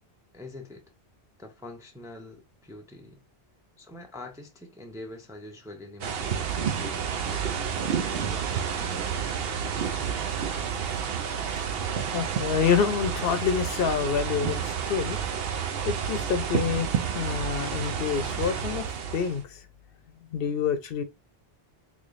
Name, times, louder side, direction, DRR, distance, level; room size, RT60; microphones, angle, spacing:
voice 1, 0.3-0.9 1.4-3.2 3.8-9.6, left 2 dB, 5° right, 0.4 m, -45 dB
sound 1, 6.0-19.4, right 7 dB, 70° right, 0.8 m, -30 dB
voice 2, 11.8-15.2 15.8-19.6 20.3-21.0, left 7 dB, 65° left, 0.8 m, -27 dB
3.6 x 3.2 x 2.5 m
omnidirectional pair, 1.1 m